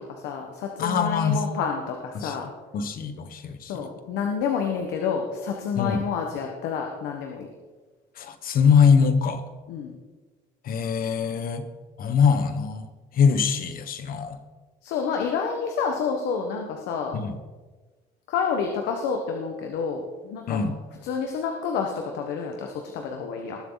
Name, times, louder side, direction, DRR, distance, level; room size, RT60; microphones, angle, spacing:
voice 1, 0.0-2.5 3.7-7.5 9.7-9.9 14.8-17.1 18.3-20.6 21.0-23.6, left 6 dB, 90° left, 3 dB, 1.4 m, -29 dB
voice 2, 0.8-1.4 2.1-2.4 2.7-3.7 5.7-6.0 8.2-9.4 10.6-11.6 12.0-12.9 13.1-14.4 17.1-17.4 20.5-20.7, left 6 dB, 60° left, 10 dB, 1.3 m, -22 dB
20.0 x 7.5 x 4.0 m, 1.3 s
cardioid pair, 110°, 17 cm